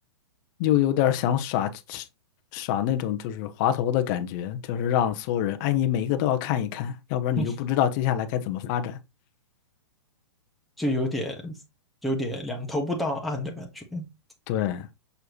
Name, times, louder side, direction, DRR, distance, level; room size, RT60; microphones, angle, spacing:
voice 1, 0.6-2.1 2.5-9.0 14.5-14.9, left 11 dB, 40° left, 1.0 m, -25 dB
voice 2, 10.8-11.6 12.0-14.1, left 1 dB, ahead, 1.4 m, -29 dB
6.7 x 4.7 x 3.1 m
hypercardioid pair, 130°, 15 cm